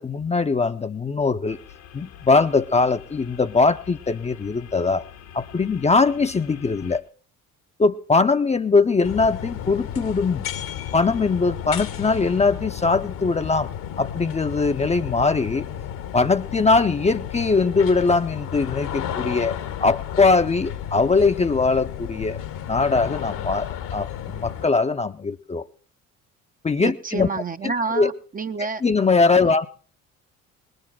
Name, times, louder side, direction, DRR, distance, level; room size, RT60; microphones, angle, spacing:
voice 1, 0.0-1.6 1.9-5.0 5.3-7.0 7.8-10.5 10.9-15.7 16.1-22.4 22.7-25.7 26.6-27.3 27.9-28.1 28.8-29.7, left 4 dB, 15° left, 0.7 m, -21 dB
sound 1, 1.5-7.0, left 9 dB, 70° left, 1.5 m, -45 dB
sound 2, 9.0-24.7, left 10 dB, 55° left, 1.2 m, -33 dB
voice 2, 26.8-28.8 29.3-29.5, right 4 dB, 20° right, 0.6 m, -29 dB
20.0 x 7.9 x 5.7 m
figure-of-eight pair, 50°, 41 cm